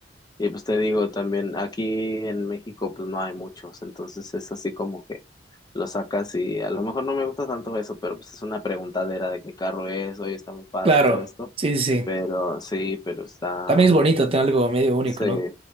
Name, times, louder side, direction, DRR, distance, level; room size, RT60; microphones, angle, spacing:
voice 1, 0.4-5.2 5.7-11.5 12.1-13.8 14.1-14.2 15.2-15.5, left 2 dB, 20° left, 0.5 m, -28 dB
voice 2, 10.8-11.2 11.6-12.1 13.7-15.4, right 2 dB, 30° right, 0.5 m, -19 dB
3.0 x 2.9 x 3.1 m
head